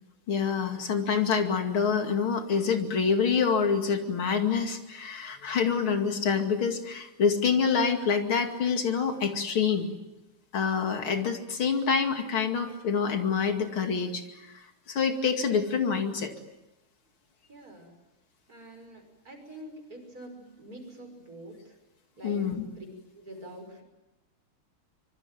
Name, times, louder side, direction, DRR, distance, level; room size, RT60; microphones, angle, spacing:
voice 1, 0.3-9.9 10.5-14.2 14.9-16.3 22.2-22.7, left 6 dB, 75° left, 5 dB, 3.2 m, -26 dB
voice 2, 17.5-17.9 18.5-21.8 22.2-22.9 23.1-23.8, right 1 dB, 40° right, 4 dB, 6.6 m, -46 dB
25.5 x 24.0 x 9.3 m, 0.99 s
omnidirectional pair, 2.3 m